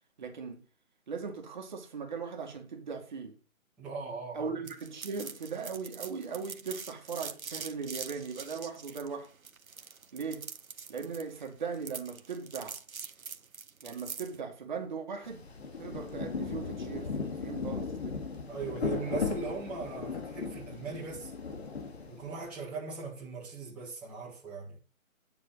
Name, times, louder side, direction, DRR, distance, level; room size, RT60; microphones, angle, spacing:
voice 1, 0.2-0.7 1.1-3.4 4.3-9.3 10.1-10.5 10.9-12.8 13.8-15.5 15.8-18.3, right 5 dB, 35° right, 2.1 m, -39 dB
voice 2, 3.8-4.5 18.5-21.3 22.1-24.8, right 4 dB, 5° right, 1.8 m, -39 dB
sound 1, 4.7-14.4, right 5 dB, 90° right, 1.4 m, -44 dB
Rain, 15.2-22.5, left 5 dB, 50° left, 2.3 m, -37 dB
9.9 x 7.0 x 5.7 m
hypercardioid pair, 165°, 40 cm